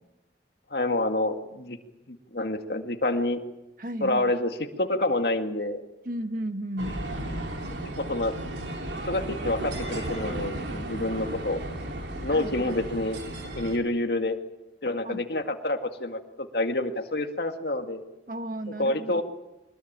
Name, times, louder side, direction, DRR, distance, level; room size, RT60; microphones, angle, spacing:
voice 1, 0.7-1.8 2.1-3.4 4.0-5.8 7.8-8.3 9.1-11.6 12.2-13.2 13.5-14.4 14.8-18.0 18.7-19.2, left 2 dB, 60° left, 6 dB, 2.0 m, -28 dB
voice 2, 3.8-4.3 6.0-7.0 12.3-12.8 15.0-15.2 18.3-19.2, right 1 dB, 50° right, 8 dB, 1.5 m, -34 dB
sound 1, 6.8-13.8, right 1 dB, 80° right, 3.2 m, -34 dB
23.5 x 21.0 x 9.0 m, 1.0 s
head